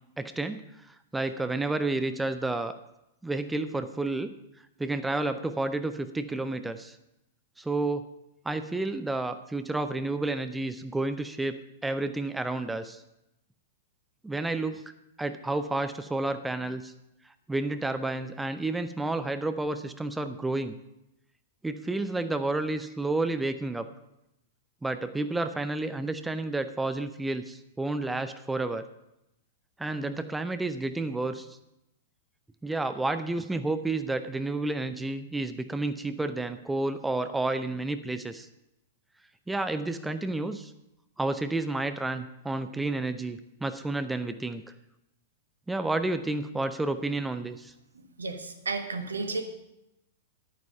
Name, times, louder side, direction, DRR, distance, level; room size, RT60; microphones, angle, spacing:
voice 1, 0.2-0.6 1.1-2.7 3.2-4.3 4.8-6.9 7.6-8.1 8.5-13.0 14.2-14.8 15.2-16.9 17.5-20.8 21.6-23.9 24.8-28.8 29.8-31.5 32.6-38.5 39.5-40.7 41.2-44.6 45.7-47.7, right 2 dB, 5° right, 10 dB, 0.6 m, -30 dB
voice 2, 48.2-49.4, right 3 dB, 75° right, 7 dB, 1.3 m, -32 dB
11.0 x 9.3 x 5.4 m, 0.86 s
figure-of-eight pair, 100°, 0 cm